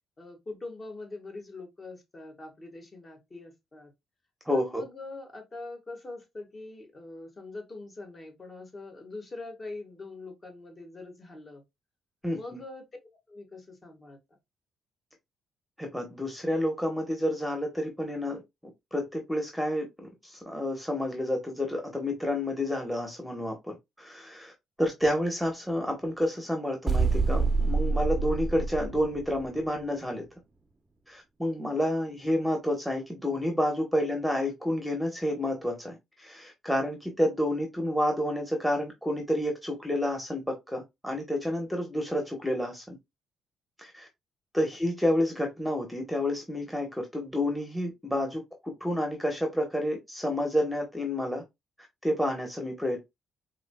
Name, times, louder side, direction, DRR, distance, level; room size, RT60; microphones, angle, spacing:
voice 1, 0.2-3.9 4.5-11.6 12.3-12.9 13.3-14.2, left 2 dB, 35° left, 1.5 m, -43 dB
voice 2, 4.4-4.8 12.2-12.6 15.8-18.4 18.9-24.5 24.8-30.2 31.1-43.0 43.8-44.1 44.5-51.4 52.0-53.0, left 1 dB, ahead, 1.1 m, -29 dB
sound 1, 26.9-29.6, right 3 dB, 25° right, 0.6 m, -27 dB
4.8 x 2.8 x 2.2 m
cardioid pair, 90°, 0 cm